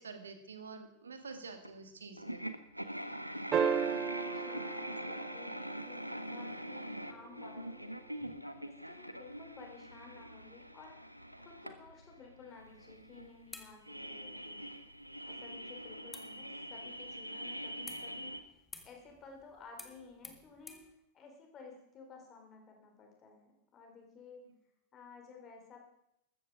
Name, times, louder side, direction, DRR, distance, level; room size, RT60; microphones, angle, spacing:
voice 1, 0.0-2.4, right 4 dB, 70° right, 8 dB, 1.9 m, -48 dB
sound 1, 1.6-1.7 2.2-18.4, equal, 90° right, 0.9 m, -44 dB
sound 2, 3.5-6.1 8.3-8.4, right 7 dB, 25° right, 0.9 m, -34 dB
voice 2, 4.2-7.8 8.4-11.0 11.4-14.7 15.2-24.4 24.9-25.8, left 4 dB, 30° left, 2 dB, 4.2 m, -55 dB
sound 3, 12.5-20.9, left 3 dB, 10° left, 1.7 m, -56 dB
15.0 x 13.5 x 5.0 m, 0.80 s
figure-of-eight pair, 90°, 0 cm